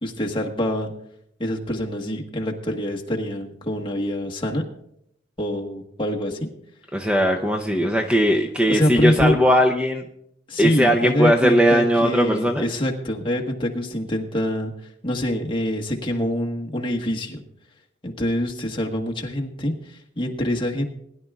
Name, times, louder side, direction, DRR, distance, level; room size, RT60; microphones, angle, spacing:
voice 1, 0.0-0.9 1.4-4.6 5.4-6.5 8.7-9.4 10.5-14.7 15.0-17.4 18.0-20.8, equal, 25° left, 0 dB, 1.3 m, -25 dB
voice 2, 6.9-10.0 10.6-12.7, equal, 5° right, 2 dB, 0.6 m, -19 dB
20.0 x 11.0 x 2.4 m, 0.74 s
head